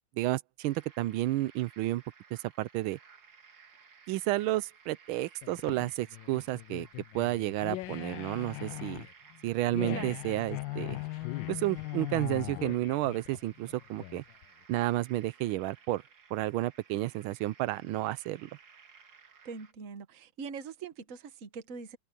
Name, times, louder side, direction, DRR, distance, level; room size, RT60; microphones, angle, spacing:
voice 1, 0.2-2.0 2.3-3.0 4.1-6.9 7.1-9.1 9.4-11.0 11.5-14.2 14.7-16.0 16.3-18.5, right 16 dB, 90° right, 1.5 m, -31 dB
sound 1, 0.6-19.7, right 6 dB, 65° right, 2.5 m, -58 dB
sound 2, 5.4-14.5, left 18 dB, 75° left, 1.2 m, -40 dB
voice 2, 19.4-22.0, right 5 dB, 45° right, 1.5 m, -42 dB
omnidirectional pair, 2.2 m